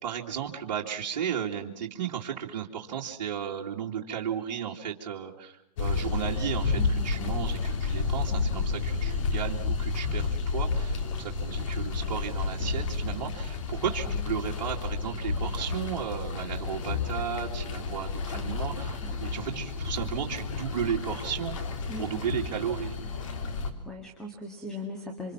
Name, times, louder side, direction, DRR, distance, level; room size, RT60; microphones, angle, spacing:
voice 1, 0.0-21.6 22.0-23.0, right 8 dB, 55° right, -2 dB, 2.5 m, -34 dB
sound 1, 5.8-23.7, left 4 dB, 50° left, 3.2 m, -31 dB
voice 2, 6.7-7.3 14.5-14.6 18.3-18.8 19.0-19.2 21.9-22.2 23.8-25.3, left 1 dB, 5° left, 2 dB, 2.0 m, -40 dB
27.5 x 26.0 x 6.0 m, 0.75 s
hypercardioid pair, 150°, 21 cm